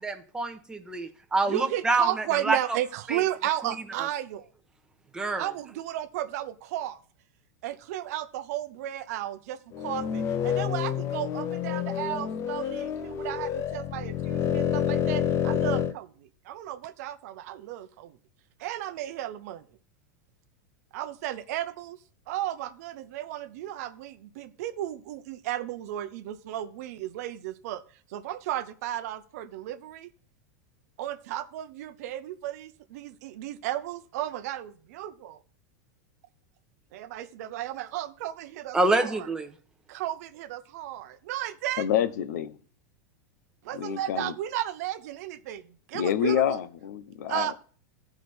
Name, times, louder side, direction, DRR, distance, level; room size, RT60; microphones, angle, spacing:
voice 1, 0.0-2.6 3.1-3.2 5.1-5.5 38.7-39.5, right 3 dB, 10° right, 1.0 m, -26 dB
voice 2, 1.5-4.5 5.4-7.0 7.6-18.2 18.6-19.7 20.9-22.0 22.3-27.8 28.1-30.1 31.0-35.4 36.9-39.1 39.9-41.9 43.6-46.6 47.3-47.5, right 13 dB, 65° right, 0.7 m, -34 dB
sound 1, 9.7-15.9, left 9 dB, 30° left, 0.6 m, -28 dB
voice 3, 41.8-42.6 43.7-44.3 45.9-47.5, left 9 dB, 80° left, 0.8 m, -27 dB
14.0 x 4.9 x 4.3 m
supercardioid pair, 140°, 9 cm